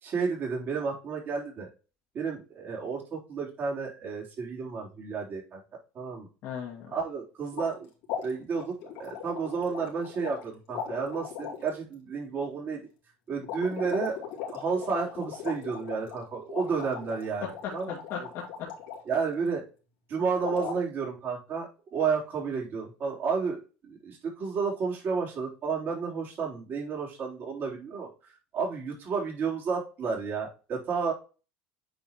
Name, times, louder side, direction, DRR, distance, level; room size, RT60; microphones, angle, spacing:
voice 1, 0.0-1.7 2.1-5.6 6.0-6.3 6.9-7.9 8.2-12.8 13.3-14.2 14.5-17.9 19.1-19.6 20.1-21.7 21.9-28.1 28.5-31.1, right 5 dB, 45° right, -2 dB, 3.6 m, -31 dB
voice 2, 6.4-6.9 17.4-18.7, left 7 dB, 60° left, -2 dB, 1.9 m, -37 dB
sound 1, 7.5-7.8 8.0-10.4 10.7-11.7 13.4-19.0 20.4-20.8, left 8 dB, 80° left, 2.5 m, -38 dB
9.1 x 4.3 x 3.0 m, 0.33 s
supercardioid pair, 95°, 5 cm